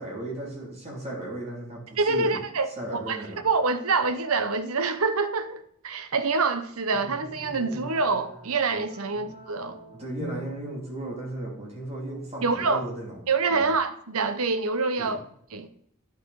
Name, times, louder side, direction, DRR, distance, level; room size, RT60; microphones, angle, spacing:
voice 1, 0.0-2.4 2.8-3.5 9.1-9.3 9.9-13.2 13.5-13.7 15.0-15.1, right 1 dB, 30° right, 2.9 m, -36 dB
voice 2, 2.0-9.8 12.4-12.9 13.3-15.2 15.5-15.7, right 4 dB, 70° right, 0.9 m, -26 dB
sound 1, 6.9-11.3 11.7-12.9, right 1 dB, 55° left, 2.2 m, -44 dB
10.5 x 6.3 x 4.8 m
head